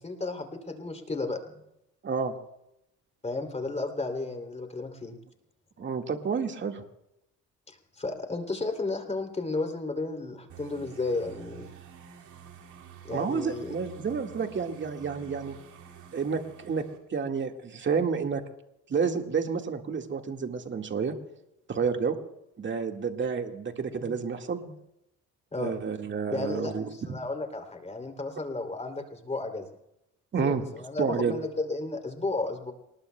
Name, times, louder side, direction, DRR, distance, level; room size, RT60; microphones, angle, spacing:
voice 1, 0.0-1.4 3.2-5.1 7.7-11.7 13.0-13.7 24.7-24.8 25.5-25.7 26.3-29.7 30.4-32.7, left 3 dB, 20° left, 6 dB, 2.9 m, -33 dB
voice 2, 2.0-2.3 5.8-6.8 13.1-15.5 16.1-16.8 17.1-18.4 18.9-21.1 21.7-22.2 22.6-24.6 25.6-26.9 30.3-30.6 31.0-31.4, right 5 dB, 40° right, 4 dB, 1.8 m, -30 dB
sound 1, 10.5-17.0, right 8 dB, 75° right, 2.5 m, -49 dB
28.0 x 20.0 x 2.3 m, 0.86 s
cardioid pair, 90°, 30 cm